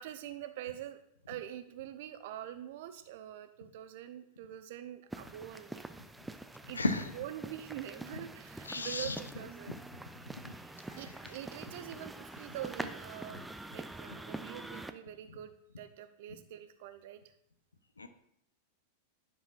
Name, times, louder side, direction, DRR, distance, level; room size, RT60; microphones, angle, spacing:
voice 1, 0.0-5.8 6.7-6.8 7.1-9.8 10.5-17.2, right 12 dB, 50° right, 10 dB, 0.6 m, -45 dB
sound 1, 5.1-14.9, right 2 dB, 5° right, 0.4 m, -45 dB
voice 2, 6.7-7.0 8.7-9.2 10.3-10.5 10.9-11.0 18.0-18.1, left 3 dB, 75° left, 10 dB, 0.5 m, -33 dB
9.9 x 6.2 x 2.4 m, 0.71 s
figure-of-eight pair, 90°, 0 cm